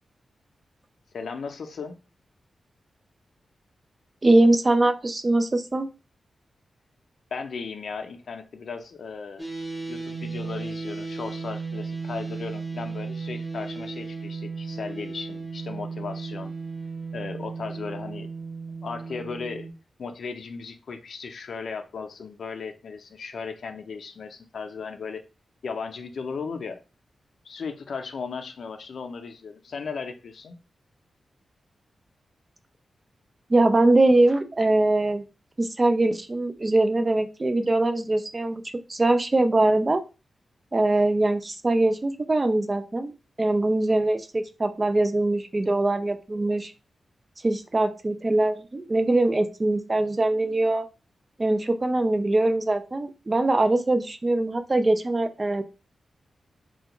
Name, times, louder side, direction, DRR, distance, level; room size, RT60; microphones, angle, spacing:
voice 1, 1.1-2.0 7.3-9.5 9.9-16.5 17.1-18.3 18.8-19.7 20.0-25.2 25.6-26.8 27.4-30.5, left 5 dB, 65° left, 0.5 m, -36 dB
voice 2, 4.2-5.9 33.5-35.2 35.6-38.6 38.9-40.0 40.7-43.1 43.4-46.7 47.4-50.8 51.4-55.6, right 2 dB, 25° right, 0.3 m, -22 dB
sound 1, 9.4-19.7, right 4 dB, 5° left, 0.9 m, -35 dB
3.3 x 2.3 x 2.9 m
wide cardioid pair, 145°, 0 cm